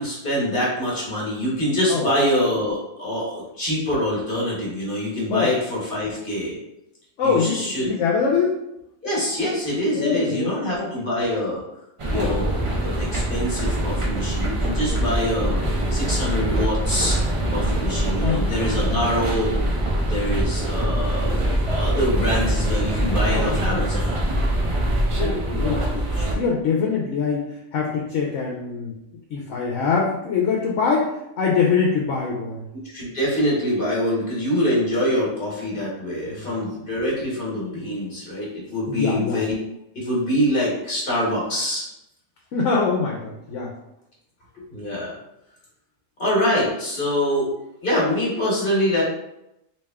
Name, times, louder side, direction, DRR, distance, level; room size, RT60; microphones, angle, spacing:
voice 1, 0.0-6.6 7.2-7.9 9.0-11.6 12.1-15.6 15.9-17.2 17.5-19.5 20.1-21.3 21.6-24.2 32.9-39.5 39.9-41.8 44.5-45.1 46.2-47.5 47.8-49.0, left 1 dB, 40° left, -5 dB, 1.3 m, -25 dB
voice 2, 7.2-8.5 10.0-10.9 12.1-12.4 18.2-19.0 23.3-23.9 25.1-28.9 29.3-32.7 36.3-36.7 38.9-39.4 42.5-43.7, left 5 dB, 70° left, -2 dB, 0.9 m, -24 dB
sound 1, 12.0-26.3, right 1 dB, 55° right, 0.3 m, -23 dB
3.3 x 2.8 x 3.4 m, 0.84 s
omnidirectional pair, 1.4 m